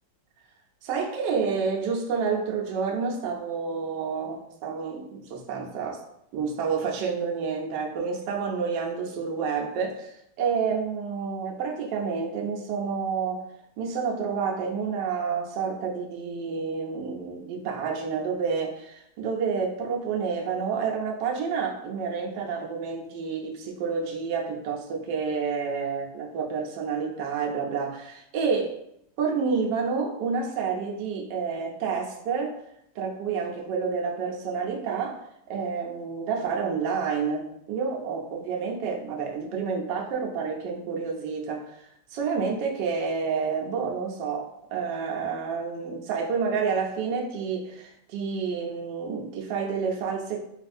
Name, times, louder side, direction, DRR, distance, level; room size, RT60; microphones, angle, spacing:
voice 1, 0.8-6.0 6.3-13.4 13.8-28.8 29.2-32.6 33.0-35.2 35.5-41.8 42.1-50.4, right 5 dB, 75° right, 0 dB, 1.0 m, -29 dB
4.0 x 2.4 x 2.5 m, 0.76 s
omnidirectional pair, 2.4 m